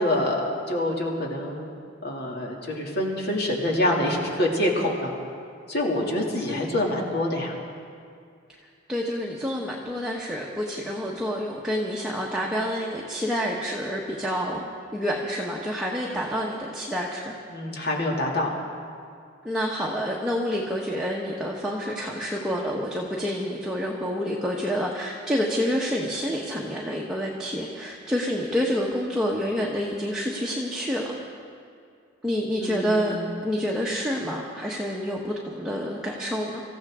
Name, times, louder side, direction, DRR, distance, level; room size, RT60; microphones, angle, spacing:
voice 1, 0.0-1.7 2.0-5.1 5.7-7.6 17.5-18.5 32.6-33.2, left 1 dB, 55° left, -1 dB, 2.5 m, -26 dB
voice 2, 8.9-14.6 14.9-17.3 19.4-31.2 32.2-33.1 33.4-36.6, equal, 5° right, -4 dB, 1.2 m, -28 dB
25.5 x 15.0 x 3.7 m, 2.3 s
head